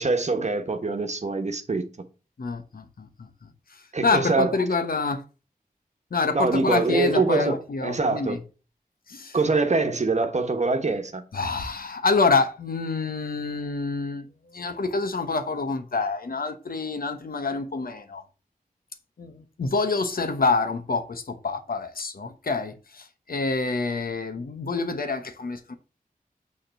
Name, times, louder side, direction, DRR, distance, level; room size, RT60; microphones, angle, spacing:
voice 1, 0.0-1.9 3.9-4.5 6.3-8.4 9.3-11.2, right 3 dB, 50° right, 1.1 m, -24 dB
voice 2, 2.4-3.3 4.0-5.2 6.1-8.4 9.1-9.4 11.3-14.3 14.5-18.2 19.2-25.7, left 4 dB, 75° left, 1.0 m, -27 dB
6.6 x 3.7 x 5.7 m
wide cardioid pair, 65°, 15 cm